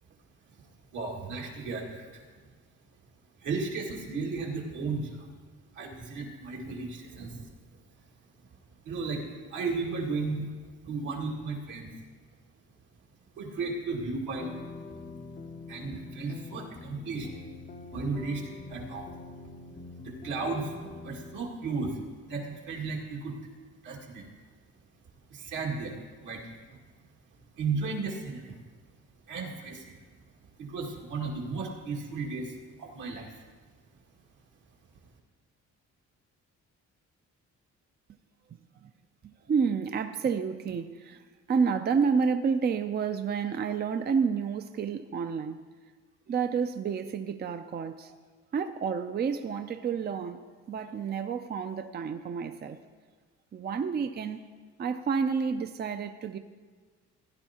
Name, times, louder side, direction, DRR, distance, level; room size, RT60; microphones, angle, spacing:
voice 1, 0.9-2.2 3.4-5.3 5.7-7.5 8.8-9.3 9.5-10.5 10.8-11.9 13.3-14.5 15.7-17.4 17.9-19.1 20.0-22.0 22.3-23.4 23.8-24.2 25.3-26.6 27.6-28.6 29.3-30.0 30.6-33.3, right 4 dB, 80° right, 2.1 m, -34 dB
sound 1, 14.4-21.4, left 3 dB, 30° left, 0.6 m, -45 dB
voice 2, 39.5-41.2 41.5-45.6 46.3-48.1 48.5-50.4 50.7-52.8 53.5-54.4 54.8-56.4, right 6 dB, 35° right, 0.5 m, -29 dB
16.5 x 10.5 x 2.9 m
cardioid pair, 90°, 30 cm